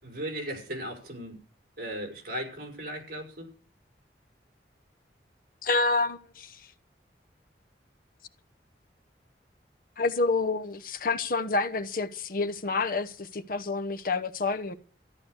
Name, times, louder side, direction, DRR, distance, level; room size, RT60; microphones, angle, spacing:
voice 1, 0.0-1.4 1.8-3.5, equal, 55° right, 5.2 m, -37 dB
voice 2, 5.6-6.6 10.0-14.7, left 3 dB, 50° left, 0.9 m, -28 dB
14.0 x 11.0 x 6.4 m
head